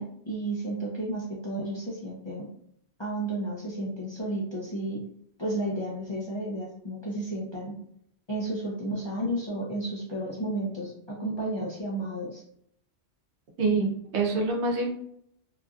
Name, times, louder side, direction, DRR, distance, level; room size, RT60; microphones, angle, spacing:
voice 1, 0.0-2.5 3.0-5.0 5.4-7.8 8.3-12.4, right 1 dB, 35° left, -5 dB, 0.4 m, -32 dB
voice 2, 13.6-14.9, right 3 dB, 80° right, 1 dB, 1.0 m, -26 dB
2.9 x 2.5 x 2.3 m, 0.69 s
omnidirectional pair, 1.1 m